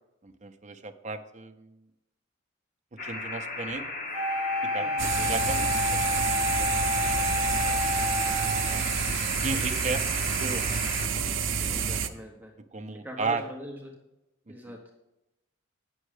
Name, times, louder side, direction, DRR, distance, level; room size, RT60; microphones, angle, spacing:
voice 1, 0.2-1.7 3.0-3.8 4.7-8.9 9.4-10.8 11.1-11.8 12.7-13.4 14.5-14.6, right 3 dB, 40° right, 6 dB, 0.6 m, -36 dB
sound 1, 3.0-11.1, left 3 dB, 45° left, 1.3 m, -36 dB
Wind instrument woodwind instrument, 4.1-9.2, left 2 dB, 75° left, 3.4 m, -29 dB
voice 2, 4.8-5.3 11.6-12.5 13.0-13.9 14.5-14.8, equal, 10° right, 0 dB, 1.0 m, -42 dB
sound 2, 5.0-12.1, right 6 dB, 80° right, 0.6 m, -29 dB
8.8 x 6.3 x 4.9 m, 0.93 s
head